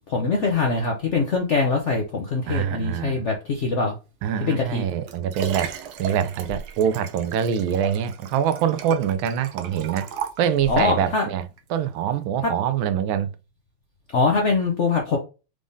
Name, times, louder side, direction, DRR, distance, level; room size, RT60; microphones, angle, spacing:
voice 1, 0.1-3.9 4.4-4.8 10.7-11.3 14.1-15.2, left 4 dB, 65° left, 0.7 m, -23 dB
voice 2, 2.5-3.2 4.2-10.1 10.4-13.3, right 8 dB, 85° right, 1.4 m, -24 dB
Liquid, 4.7-10.9 11.6-11.7, right 7 dB, 70° right, 1.0 m, -35 dB
4.9 x 3.5 x 2.6 m
omnidirectional pair, 2.2 m